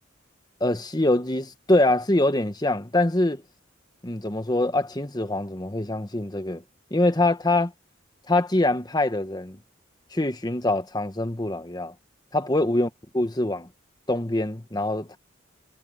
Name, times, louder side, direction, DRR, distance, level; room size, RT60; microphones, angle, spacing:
voice 1, 0.6-3.4 4.0-6.6 6.9-7.7 8.3-9.6 10.1-11.9 12.3-13.7 14.1-15.2, left 2 dB, 20° left, 1.2 m, -24 dB
head